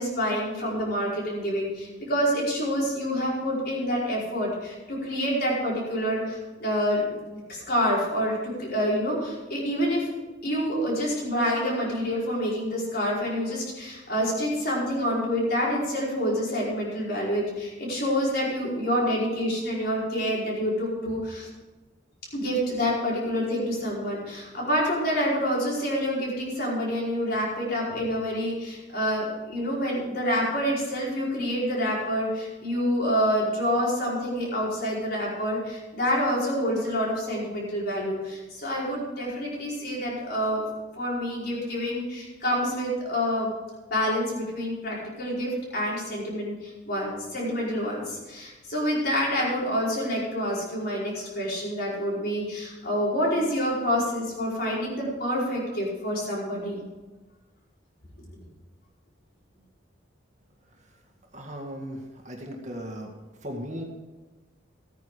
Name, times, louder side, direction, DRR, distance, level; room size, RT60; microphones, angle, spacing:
voice 1, 0.0-7.2 7.5-10.1 10.4-21.5 22.3-40.6 40.9-43.5 43.9-56.8, equal, 50° left, -5 dB, 5.0 m, -27 dB
voice 2, 61.3-63.1 63.4-63.8, equal, 40° right, 1 dB, 2.0 m, -37 dB
14.5 x 9.5 x 4.9 m, 1.2 s
head